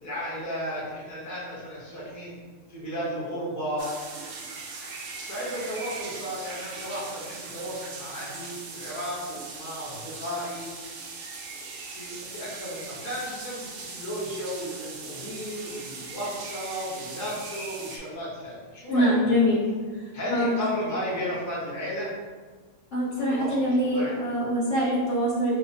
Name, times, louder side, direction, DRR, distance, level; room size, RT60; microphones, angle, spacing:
voice 1, 0.0-2.3 2.7-3.9 5.2-10.7 11.5-19.4 20.1-22.1 23.3-24.1, equal, 15° left, -7 dB, 0.6 m, -34 dB
sound 1, 3.8-18.0, right 4 dB, 65° right, 0.8 m, -40 dB
voice 2, 18.9-19.6 19.9-20.6 22.9-25.6, equal, 60° left, -6 dB, 0.9 m, -24 dB
4.7 x 2.0 x 2.7 m, 1.5 s
omnidirectional pair, 1.6 m